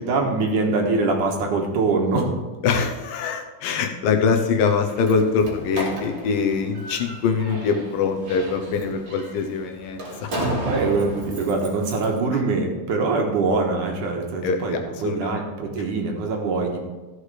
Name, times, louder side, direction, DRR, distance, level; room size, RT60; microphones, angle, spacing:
voice 1, 0.1-2.3 10.3-16.8, right 3 dB, 65° right, 1 dB, 2.6 m, -23 dB
voice 2, 2.6-10.3 14.4-15.4, left 5 dB, 75° left, 4 dB, 2.4 m, -23 dB
Slam, 4.7-12.2, right 1 dB, 35° right, 2.3 m, -33 dB
14.0 x 6.5 x 4.9 m, 1.3 s
omnidirectional pair, 4.2 m